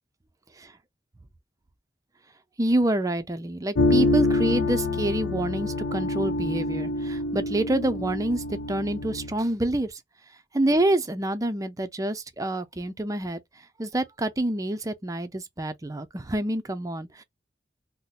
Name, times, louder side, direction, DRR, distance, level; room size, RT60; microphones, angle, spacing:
voice 1, 2.6-10.0 10.5-13.4 13.8-17.2, right 1 dB, 20° right, 0.5 m, -27 dB
sound 1, 3.7-9.3, left 2 dB, 90° left, 0.7 m, -26 dB
2.7 x 2.1 x 3.9 m
head